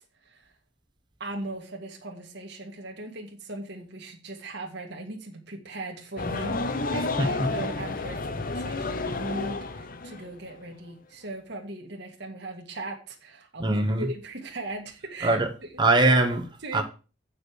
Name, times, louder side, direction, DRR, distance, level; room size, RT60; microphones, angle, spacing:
voice 1, 0.2-0.5 1.2-15.8 16.6-16.8, right 2 dB, 55° right, 1.8 m, -38 dB
sound 1, 6.2-10.6, left 3 dB, 45° left, 0.8 m, -31 dB
voice 2, 13.6-14.1 15.2-15.5 15.8-16.8, right 2 dB, 20° right, 1.1 m, -22 dB
8.6 x 5.3 x 6.3 m
head